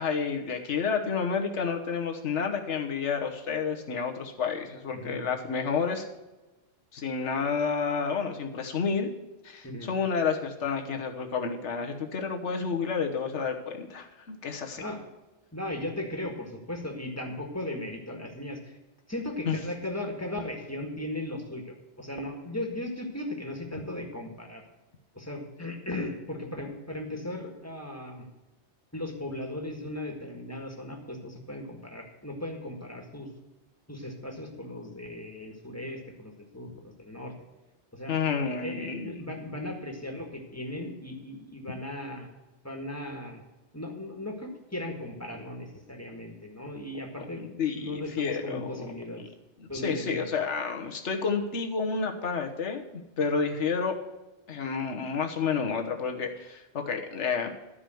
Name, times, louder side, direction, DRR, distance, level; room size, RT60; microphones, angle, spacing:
voice 1, 0.0-6.1 6.9-9.1 9.4-14.8 19.5-19.6 38.1-39.1 47.4-48.9 49.6-52.8 53.2-54.0 54.5-57.5, left 5 dB, 80° left, 3 dB, 1.5 m, -30 dB
voice 2, 4.9-5.2 9.6-9.9 14.8-15.0 15.5-18.8 19.1-24.6 25.1-28.3 28.9-33.3 33.9-37.3 37.9-42.3 42.6-43.4 43.7-47.5 47.7-49.3 49.7-50.3, left 1 dB, 15° left, 2 dB, 1.7 m, -37 dB
12.5 x 5.0 x 7.7 m, 1.1 s
omnidirectional pair, 1.2 m